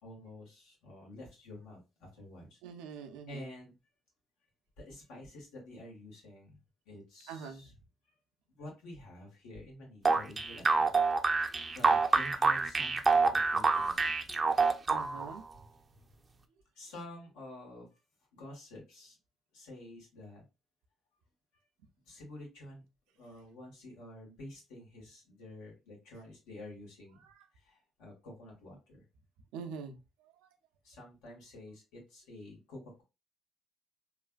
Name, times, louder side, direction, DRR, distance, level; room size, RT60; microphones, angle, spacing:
voice 1, 0.0-2.6 3.3-3.7 4.8-6.6 6.9-7.7 8.6-11.0 11.7-14.3 15.5-15.6 16.8-17.9 18.3-19.1 19.5-20.4 22.1-22.8 23.2-27.2 27.7-29.0 30.8-33.0, left 1 dB, 85° left, 1.4 m, -49 dB
voice 2, 2.6-3.5 7.3-7.7 14.9-15.4 27.2-27.3 29.5-30.0, right 6 dB, 90° right, 0.5 m, -44 dB
sound 1, 10.1-15.4, right 4 dB, 30° right, 0.4 m, -27 dB
3.1 x 2.4 x 2.2 m
supercardioid pair, 75°, 0 cm